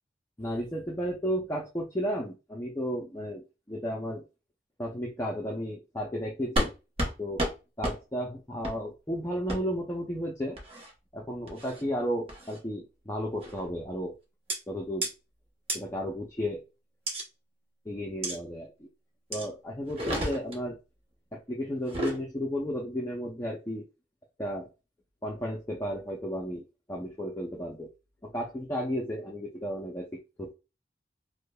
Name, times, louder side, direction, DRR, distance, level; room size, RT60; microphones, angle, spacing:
voice 1, 0.4-4.2 4.8-6.7 7.2-7.5 7.8-10.6 11.1-14.1 14.7-15.1 15.7-16.6 17.9-18.9 19.3-20.8 21.3-23.8 24.4-24.7 25.2-27.9 28.2-30.5, equal, 15° left, -1 dB, 0.5 m, -33 dB
sound 1, 6.6-6.7 7.0-7.1 7.4-7.5 7.8-8.0 8.6-8.8 9.5-9.6 10.6-10.9 11.5-11.8 12.3-12.6 13.4-13.7 14.5-14.6 15.0-15.1 15.7-15.8 17.1-17.2 18.2-18.4 19.3-19.5 19.9-20.6 21.8-22.2, right 1 dB, 35° right, 0.9 m, -31 dB
4.9 x 2.1 x 2.2 m, 0.29 s
head